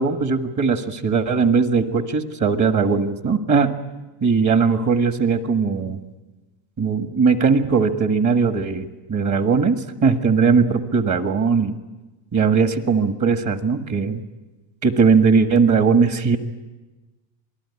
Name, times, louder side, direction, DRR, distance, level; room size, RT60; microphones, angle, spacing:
voice 1, 0.0-3.7 4.2-6.0 6.8-11.7 12.3-14.2 14.8-16.4, right 5 dB, 40° right, 7 dB, 1.7 m, -19 dB
27.0 x 19.5 x 9.8 m, 1.2 s
cardioid pair, 155°, 46 cm